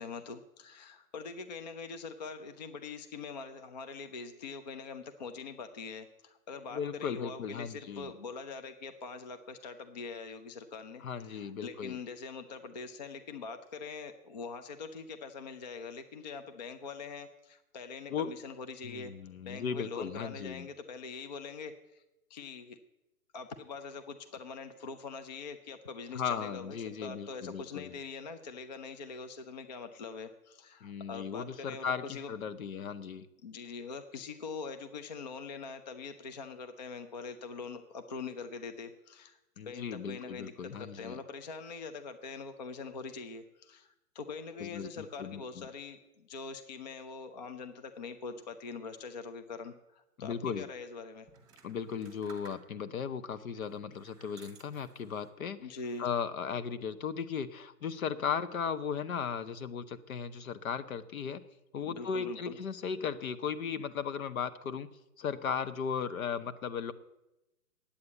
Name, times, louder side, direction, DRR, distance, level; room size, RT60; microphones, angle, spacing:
voice 1, 0.0-19.1 19.5-22.0 22.3-22.8 23.3-32.4 33.4-39.4 39.6-43.9 44.1-51.3 55.6-56.1 61.8-62.6, left 4 dB, 30° left, 8 dB, 0.5 m, -43 dB
voice 2, 6.7-8.1 11.0-12.0 18.1-18.3 18.8-20.7 26.1-28.0 30.8-33.3 39.6-41.2 44.6-45.7 50.2-50.7 51.6-55.6 56.0-61.4 61.7-64.9 65.2-66.9, left 7 dB, 60° left, 13 dB, 1.0 m, -36 dB
sound 1, 51.3-53.0 53.6-55.4 55.8-56.4, right 5 dB, 10° right, 1.3 m, -58 dB
9.4 x 8.6 x 8.1 m, 0.93 s
hypercardioid pair, 150°, 46 cm